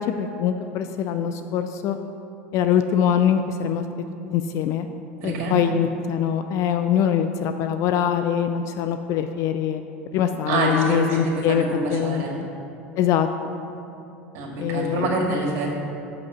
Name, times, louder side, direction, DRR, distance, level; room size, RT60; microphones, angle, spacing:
voice 1, 0.0-2.0 2.5-3.9 4.3-4.9 5.2-9.8 10.1-12.5 13.0-13.3 14.6-15.1, left 9 dB, 50° left, 8 dB, 0.4 m, -23 dB
voice 2, 5.2-5.6 10.5-12.4 14.3-15.7, right 3 dB, 50° right, -1 dB, 2.0 m, -26 dB
6.4 x 5.8 x 7.0 m, 2.8 s
hypercardioid pair, 80°, 7 cm